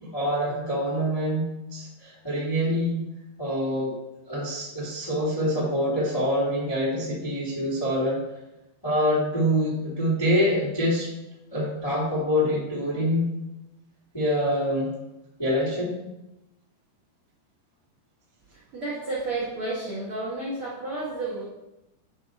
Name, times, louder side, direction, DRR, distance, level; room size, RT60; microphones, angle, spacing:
voice 1, 0.0-3.0 3.4-3.9 4.3-8.2 8.8-11.1 11.5-13.3 14.1-14.9 15.4-16.0, equal, 15° left, -7 dB, 0.8 m, -25 dB
voice 2, 18.5-21.4, right 2 dB, 85° right, -6 dB, 1.2 m, -31 dB
9.1 x 5.2 x 4.1 m, 0.94 s
omnidirectional pair, 5.3 m